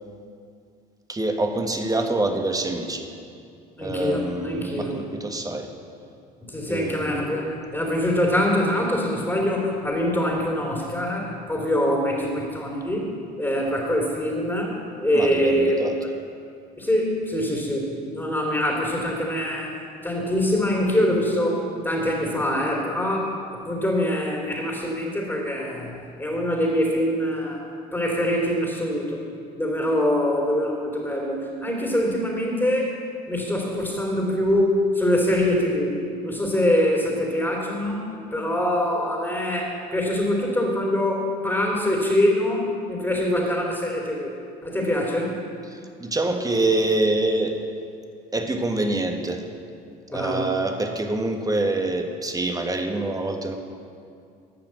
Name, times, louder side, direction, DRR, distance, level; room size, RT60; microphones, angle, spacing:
voice 1, 1.1-3.1 3.8-5.7 6.7-7.3 15.1-16.0 45.7-47.6 48.3-49.4 50.1-53.6, right 2 dB, 20° right, 4 dB, 1.4 m, -25 dB
voice 2, 3.8-5.0 6.4-7.5 7.7-13.1 13.4-15.8 16.8-17.9 18.1-19.7 20.0-23.3 23.6-27.6 27.9-29.2 29.5-32.9 33.3-36.0 36.2-44.3 44.6-45.4 50.1-50.5, left 1 dB, 10° left, -3 dB, 2.7 m, -24 dB
12.0 x 5.8 x 7.5 m, 2.4 s
hypercardioid pair, 70°, 20 cm